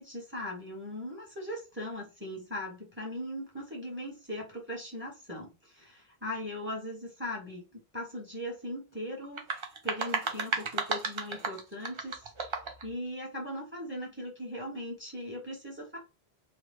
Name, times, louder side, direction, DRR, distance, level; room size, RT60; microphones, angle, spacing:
voice 1, 0.0-7.6 7.9-9.4 9.8-12.2 12.8-16.0, left 1 dB, 10° right, -2 dB, 0.9 m, -39 dB
sound 1, 9.2-12.9, right 4 dB, 45° right, 0.4 m, -34 dB
2.8 x 2.1 x 3.3 m, 0.28 s
omnidirectional pair, 1.1 m